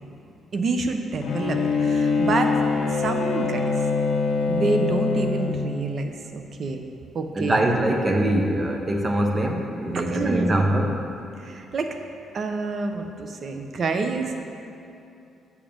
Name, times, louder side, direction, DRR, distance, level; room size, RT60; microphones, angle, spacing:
voice 1, 0.5-3.9 4.5-6.8 7.1-7.6 9.9-10.8 11.4-11.9 12.3-14.4, right 3 dB, 55° right, 5 dB, 0.8 m, -28 dB
Bowed string instrument, 1.2-5.9, left 4 dB, 65° left, 1.0 m, -24 dB
voice 2, 7.3-11.0, right 1 dB, 30° right, 3 dB, 1.0 m, -23 dB
7.3 x 6.5 x 5.2 m, 2.7 s
cardioid pair, 90°, 0 cm